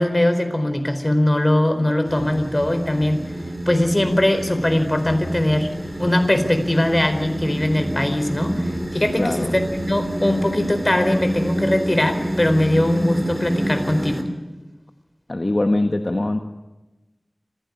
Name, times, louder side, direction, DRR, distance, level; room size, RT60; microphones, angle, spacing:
voice 1, 0.0-3.2 3.7-5.7 6.0-14.3, left 1 dB, 35° left, 7 dB, 4.4 m, -20 dB
sound 1, 2.1-14.2, equal, 35° right, 3.5 m, -28 dB
voice 2, 9.2-9.6 15.3-16.4, left 2 dB, 60° left, 5 dB, 1.4 m, -22 dB
26.0 x 16.0 x 9.9 m, 1.1 s
wide cardioid pair, 45°, 0 cm